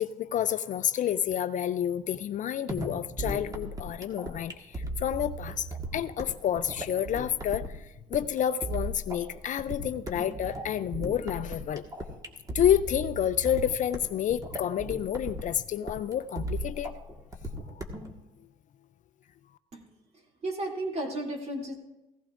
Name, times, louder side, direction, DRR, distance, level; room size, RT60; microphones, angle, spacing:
voice 1, 0.0-11.8 12.5-17.0 17.8-17.9, left 10 dB, 50° left, 13 dB, 0.4 m, -29 dB
sound 1, 2.7-18.1, right 1 dB, 20° right, 1.6 m, -37 dB
voice 2, 20.4-21.7, right 1 dB, 40° right, 0 dB, 2.7 m, -33 dB
16.5 x 15.5 x 2.5 m, 0.96 s
cardioid pair, 110°, 17 cm